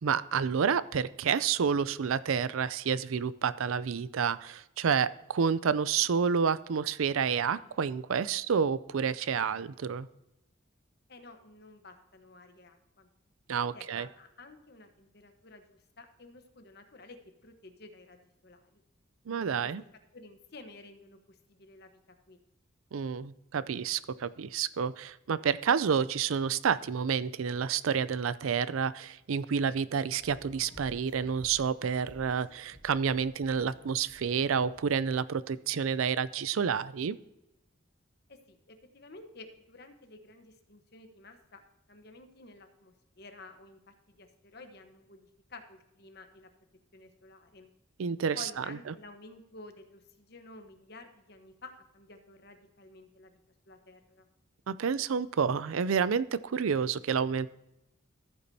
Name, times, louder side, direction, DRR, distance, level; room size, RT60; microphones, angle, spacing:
voice 1, 0.0-10.1 13.5-14.1 19.3-19.8 22.9-37.2 48.0-48.8 54.7-57.5, right 6 dB, 85° right, 17 dB, 0.5 m, -29 dB
voice 2, 11.1-13.1 13.6-17.2 17.4-18.8 19.6-19.7 20.1-22.4 38.3-41.6 41.9-46.5 46.9-47.7 48.3-53.4 53.7-54.3, left 2 dB, 50° left, 7 dB, 1.1 m, -52 dB
sound 1, 30.2-35.2, equal, 55° right, 2.7 m, -55 dB
14.5 x 8.3 x 2.8 m, 0.87 s
head